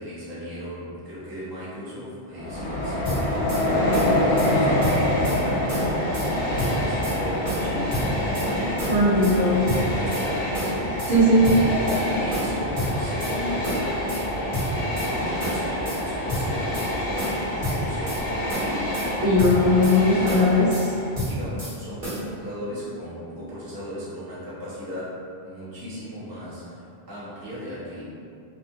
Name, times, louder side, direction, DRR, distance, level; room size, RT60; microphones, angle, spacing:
voice 1, 0.0-11.1 11.5-20.2 21.3-28.0, equal, 25° right, -10 dB, 0.7 m, -37 dB
Train, 2.3-21.2, left 1 dB, 60° left, 0.7 m, -26 dB
sound 1, 3.1-3.6 3.9-4.5 4.8-5.4 5.7-6.3 6.6-7.2 7.5-8.5 8.8-9.4 9.7-10.3 10.5-11.2 11.4-12.0 12.3-13.4 13.6-14.2 14.5-15.1 15.4-16.0 16.3-16.9 17.2-18.2 18.5-19.1 19.4-20.0 20.3-20.9 21.2-21.8 22.0-22.2, equal, 55° right, 1.3 m, -30 dB
voice 2, 8.9-9.6 11.1-11.5 19.2-21.0, left 1 dB, 75° right, -9 dB, 1.0 m, -19 dB
2.7 x 2.4 x 2.6 m, 2.5 s
omnidirectional pair, 1.1 m